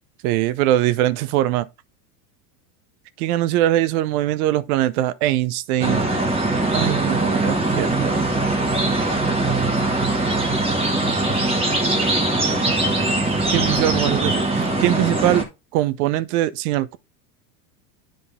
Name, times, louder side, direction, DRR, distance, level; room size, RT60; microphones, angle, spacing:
voice 1, 0.2-1.7 3.2-6.0 6.7-8.2 13.5-15.5 15.7-17.0, right 14 dB, 65° right, 0.8 m, -22 dB
sound 1, 5.8-15.4, right 2 dB, 10° right, 1.6 m, -21 dB
10.0 x 3.9 x 3.6 m
supercardioid pair, 120°, 48 cm